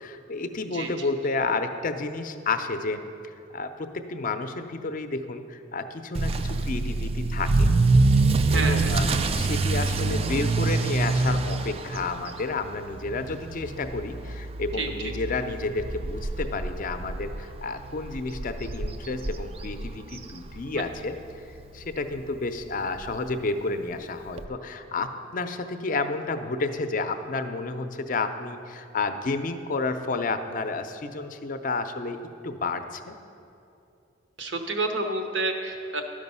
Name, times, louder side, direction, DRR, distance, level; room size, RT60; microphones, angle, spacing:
voice 1, 0.0-3.0 3.5-7.7 8.5-9.1 9.3-21.2 21.7-33.1, left 3 dB, 45° left, 9 dB, 0.5 m, -31 dB
Motor vehicle (road) / Accelerating revving vroom, 6.2-21.0 21.3-21.7 22.2-22.3 22.6-22.7 23.0-23.1 24.4-24.5, right 3 dB, 30° right, 0.3 m, -26 dB
voice 2, 8.5-9.0 14.8-14.9 34.4-36.0, right 2 dB, 70° right, 5 dB, 0.9 m, -29 dB
12.0 x 5.1 x 5.4 m, 2.7 s
head